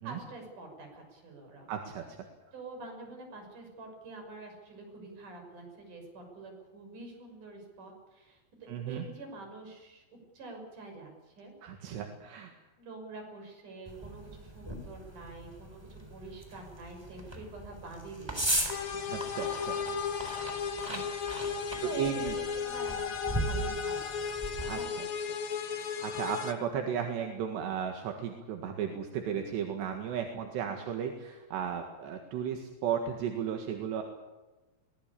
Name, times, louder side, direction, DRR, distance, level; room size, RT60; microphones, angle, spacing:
voice 1, 0.0-1.7 2.5-10.0 10.3-11.5 12.8-18.5 20.3-20.9 21.8-25.0 30.4-30.8, right 3 dB, 45° right, 3 dB, 7.5 m, -46 dB
voice 2, 1.7-2.2 8.7-9.0 11.6-12.5 19.0-19.8 20.0-20.4 20.9-21.0 21.8-22.3 24.6-25.1 25.7-34.0, right 8 dB, 75° right, 4 dB, 3.9 m, -35 dB
sound 1, 13.9-24.8, right 1 dB, 5° right, 3.4 m, -38 dB
sound 2, 18.7-26.5, left 6 dB, 50° left, 1.6 m, -35 dB
23.5 x 19.0 x 8.6 m, 1.1 s
omnidirectional pair, 4.9 m